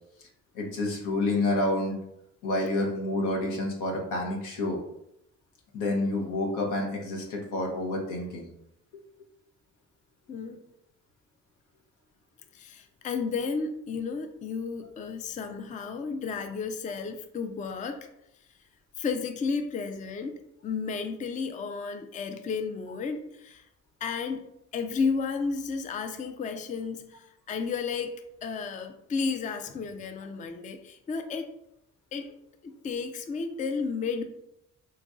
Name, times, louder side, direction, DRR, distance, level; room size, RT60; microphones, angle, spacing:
voice 1, 0.5-2.0 2.4-4.8 5.7-8.5, left 2 dB, 85° left, 0 dB, 1.0 m, -29 dB
voice 2, 10.3-10.7 12.5-18.1 19.0-20.3 20.6-23.6 24.0-24.4 24.7-28.2 28.4-31.5 32.1-32.3 32.6-34.2, left 5 dB, 25° left, 7 dB, 0.3 m, -32 dB
3.1 x 2.5 x 3.6 m, 0.80 s
cardioid pair, 90°, 30 cm